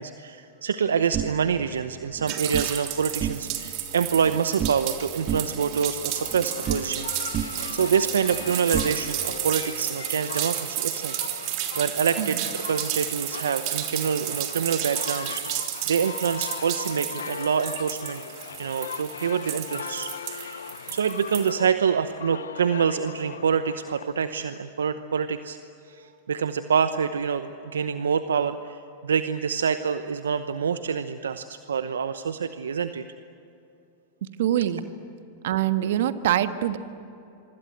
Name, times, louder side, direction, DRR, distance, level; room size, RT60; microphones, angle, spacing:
voice 1, 0.0-7.1 7.4-11.1 11.4-18.2 18.6-25.6 25.9-33.0, right 6 dB, 85° right, 11 dB, 0.9 m, -26 dB
sound 1, 1.1-2.7 3.1-3.8 4.0-5.0 5.3-7.1 7.3-9.4, right 9 dB, 35° right, 1.1 m, -33 dB
sound 2, 2.3-21.5, right 12 dB, 50° right, 3.4 m, -32 dB
sound 3, 5.3-24.6, left 7 dB, 85° left, 0.6 m, -39 dB
voice 2, 34.4-34.8 35.4-36.8, right 11 dB, 70° right, 10 dB, 1.4 m, -24 dB
26.0 x 25.0 x 8.0 m, 2.8 s
hypercardioid pair, 105°, 0 cm